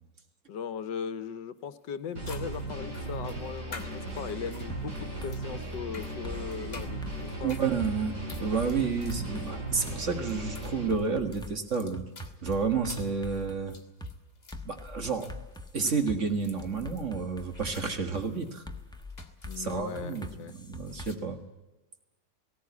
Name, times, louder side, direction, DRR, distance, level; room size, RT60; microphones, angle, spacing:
voice 1, 0.5-7.5 19.4-20.5, left 7 dB, 75° left, 14 dB, 1.5 m, -38 dB
sound 1, 1.6-1.7 2.2-21.2, left 3 dB, 25° left, 1.8 m, -52 dB
sound 2, 2.2-10.9, right 2 dB, 65° right, 5.6 m, -37 dB
sound 3, 4.7-5.3 5.7-5.9 6.2-7.9 8.3-9.5 9.9-10.0 10.4-13.6 14.0-14.1 14.5-16.2 16.6-17.8 18.1-18.3 18.7-21.1, left 2 dB, 5° left, 0.9 m, -43 dB
voice 2, 7.4-12.1 12.4-13.8 14.7-15.3 15.7-18.6 19.6-20.3 20.6-21.4, right 5 dB, 45° right, 6 dB, 1.9 m, -30 dB
18.5 x 17.0 x 9.5 m, 1.1 s
omnidirectional pair, 1.9 m